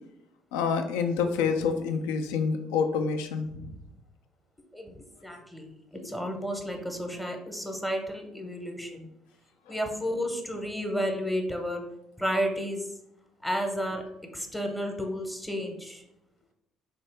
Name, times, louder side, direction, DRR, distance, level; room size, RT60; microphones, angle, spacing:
voice 1, 0.5-3.6 9.7-9.8, left 5 dB, 75° left, 6 dB, 0.3 m, -27 dB
voice 2, 5.2-5.7 6.0-9.1 9.7-11.8 12.2-12.8 13.4-14.0 14.3-16.0, equal, 5° left, 3 dB, 0.7 m, -32 dB
3.3 x 2.7 x 3.3 m, 0.85 s
hypercardioid pair, 55°, 0 cm